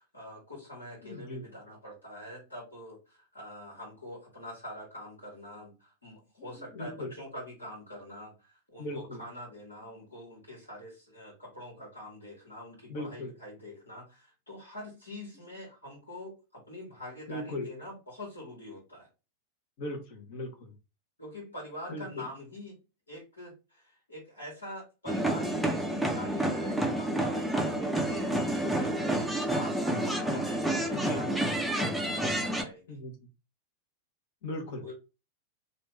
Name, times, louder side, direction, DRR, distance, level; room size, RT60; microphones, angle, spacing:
voice 1, 0.0-19.1 21.2-22.8 23.1-33.0 34.8-34.9, left 1 dB, 75° left, -4 dB, 1.8 m, -45 dB
voice 2, 1.0-1.4 6.5-7.1 8.8-9.2 12.9-13.3 17.3-17.7 19.8-20.7 21.9-22.2 30.9-31.4 32.9-33.3 34.4-34.8, left 1 dB, 50° left, 3 dB, 1.2 m, -38 dB
sound 1, 25.1-32.6, right 1 dB, ahead, 0.6 m, -29 dB
3.3 x 2.6 x 3.3 m, 0.28 s
figure-of-eight pair, 90°, 0 cm